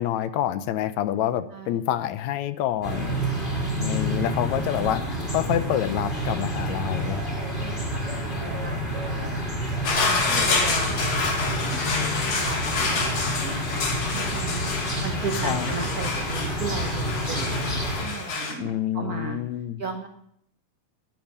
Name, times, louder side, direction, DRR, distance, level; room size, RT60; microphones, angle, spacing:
voice 1, 0.0-3.2 3.8-7.2 15.4-15.7 18.6-19.8, left 11 dB, 75° left, 13 dB, 1.9 m, -27 dB
voice 2, 1.5-1.8 3.3-3.9 7.6-9.3 9.9-17.5 18.0-19.4 19.8-20.1, right 4 dB, 75° right, 3 dB, 0.8 m, -36 dB
sound 1, 2.8-18.0, equal, 15° left, 4.5 m, -29 dB
sound 2, 9.8-18.5, left 4 dB, 60° left, 2.9 m, -28 dB
10.5 x 9.5 x 8.3 m, 0.73 s
omnidirectional pair, 3.4 m